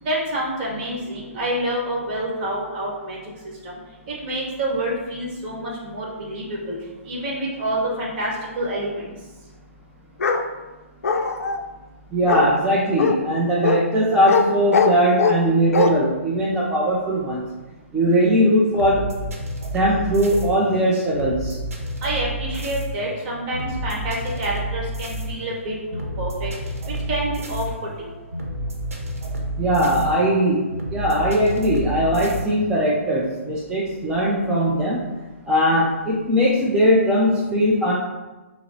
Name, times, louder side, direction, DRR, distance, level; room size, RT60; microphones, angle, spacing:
voice 1, 0.0-3.2 3.6-3.8 4.1-6.8 7.0-9.0 22.0-26.5 27.1-27.6 28.0-28.1, right 1 dB, 40° right, -3 dB, 1.2 m, -27 dB
Bark, 10.2-10.4 11.0-11.6 12.3-12.5 13.0-13.1 13.6-13.8 14.3-14.4 14.7-15.4 15.7-15.9, left 5 dB, 85° left, 0.4 m, -20 dB
voice 2, 12.1-17.5 17.9-19.0 19.7-21.6 29.6-30.6 30.9-35.0 35.5-37.9, equal, 10° right, -7 dB, 0.4 m, -20 dB
sound 1, 18.8-32.4, right 1 dB, 80° right, 0.8 m, -30 dB
5.5 x 2.0 x 2.7 m, 1.1 s
hypercardioid pair, 145°, 8 cm